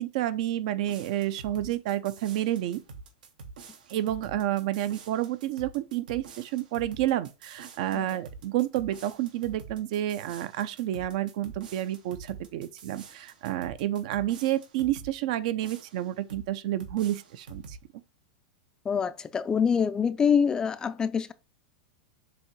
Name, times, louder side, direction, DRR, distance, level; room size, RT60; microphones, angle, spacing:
voice 1, 0.0-2.8 3.9-17.8, right 13 dB, 60° right, 0.6 m, -30 dB
sound 1, 0.9-15.2 15.6-16.5 16.8-17.8, right 4 dB, 90° right, 1.4 m, -47 dB
voice 2, 18.8-21.3, left 6 dB, 15° left, 0.4 m, -25 dB
7.1 x 2.9 x 4.6 m
supercardioid pair, 140°, 4 cm